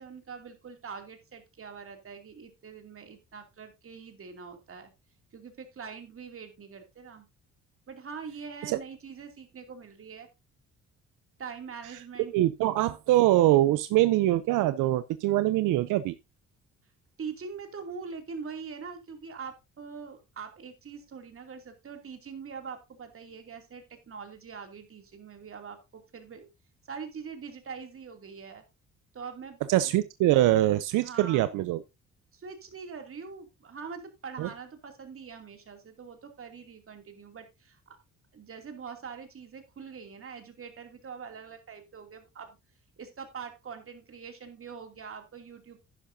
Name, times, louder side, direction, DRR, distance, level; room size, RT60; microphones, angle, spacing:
voice 1, 0.0-4.9 5.3-7.3 7.9-10.3 11.4-12.4 17.2-26.5 26.9-28.6 29.1-29.6 31.0-31.5 32.3-38.0 38.3-42.6 43.0-45.8, right 5 dB, 45° right, 2.7 m, -43 dB
voice 2, 12.3-16.2 29.7-31.8 34.4-34.5, right 15 dB, 90° right, 0.6 m, -23 dB
11.0 x 10.0 x 2.7 m
cardioid pair, 90°, 30 cm